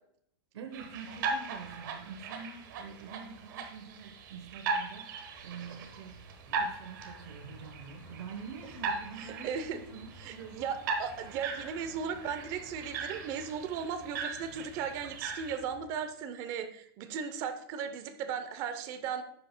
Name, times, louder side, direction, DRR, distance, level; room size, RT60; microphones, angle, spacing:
voice 1, 0.5-5.1 5.4-10.7, right 6 dB, 85° right, 5 dB, 1.1 m, -46 dB
sound 1, 0.7-15.6, right 4 dB, 45° right, 1.2 m, -39 dB
sound 2, 5.3-15.9, left 1 dB, 10° left, 1.3 m, -55 dB
voice 2, 9.4-9.8 10.2-19.2, right 7 dB, 25° right, 8 dB, 0.6 m, -36 dB
11.0 x 8.1 x 2.2 m, 0.71 s
supercardioid pair, 175°, 14 cm